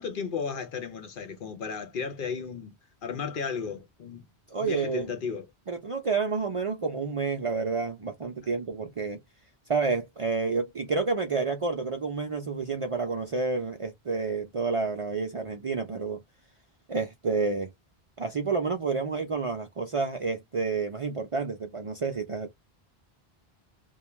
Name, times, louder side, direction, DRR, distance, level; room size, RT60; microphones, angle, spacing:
voice 1, 0.0-2.8 3.0-4.2 4.6-5.4, left 5 dB, 60° left, 0.8 m, -34 dB
voice 2, 4.5-5.1 5.7-9.2 9.7-16.2 16.9-17.7 18.2-22.5, right 4 dB, 45° right, 0.4 m, -29 dB
2.3 x 2.2 x 3.0 m
omnidirectional pair, 1.0 m